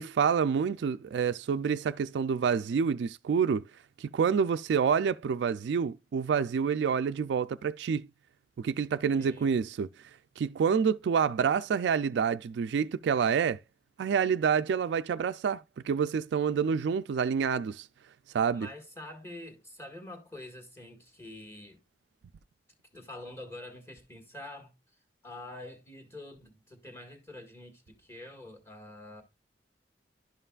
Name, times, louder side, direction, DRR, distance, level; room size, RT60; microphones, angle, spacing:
voice 1, 0.0-3.6 4.0-8.1 8.6-9.9 10.4-13.6 14.0-17.9 18.3-18.7, right 6 dB, 70° right, 0.3 m, -28 dB
voice 2, 9.2-9.5 18.5-21.8 22.9-24.7 25.2-29.2, left 1 dB, 15° left, 1.6 m, -46 dB
11.5 x 5.6 x 2.3 m
head